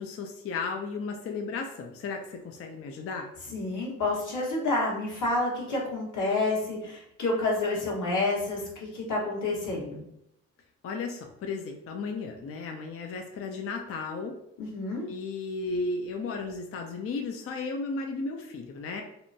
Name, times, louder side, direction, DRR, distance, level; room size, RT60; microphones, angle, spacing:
voice 1, 0.0-3.3 10.8-14.3 15.1-19.0, left 4 dB, 40° left, 3 dB, 0.5 m, -34 dB
voice 2, 3.5-10.0 14.6-15.0, left 2 dB, 55° left, -3 dB, 1.3 m, -29 dB
2.8 x 2.2 x 2.7 m, 0.78 s
supercardioid pair, 60°, 37 cm